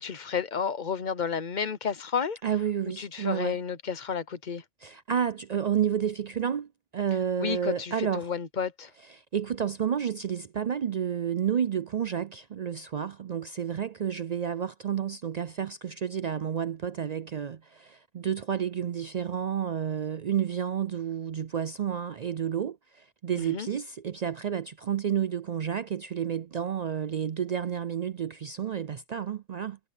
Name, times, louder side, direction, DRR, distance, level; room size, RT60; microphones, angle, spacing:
voice 1, 0.0-2.4 3.0-4.6 7.4-8.9 23.4-23.7, left 6 dB, 40° left, 0.9 m, -31 dB
voice 2, 2.4-3.6 4.8-8.3 9.3-29.8, right 8 dB, 70° right, 0.4 m, -30 dB
omnidirectional pair, 1.2 m